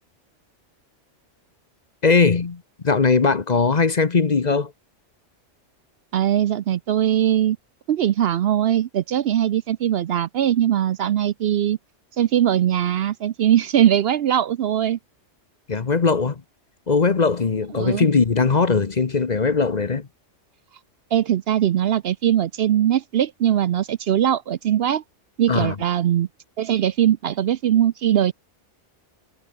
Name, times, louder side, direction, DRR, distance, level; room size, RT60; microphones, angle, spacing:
voice 1, 2.0-4.7 15.7-16.4 16.9-20.1 25.5-25.7, left 4 dB, 40° left, 1.1 m, -20 dB
voice 2, 6.1-7.6 7.9-11.8 12.2-15.0 17.8-18.1 21.1-25.0 25.4-26.3 26.6-28.3, right 11 dB, 65° right, 0.7 m, -20 dB
omnidirectional pair, 1.2 m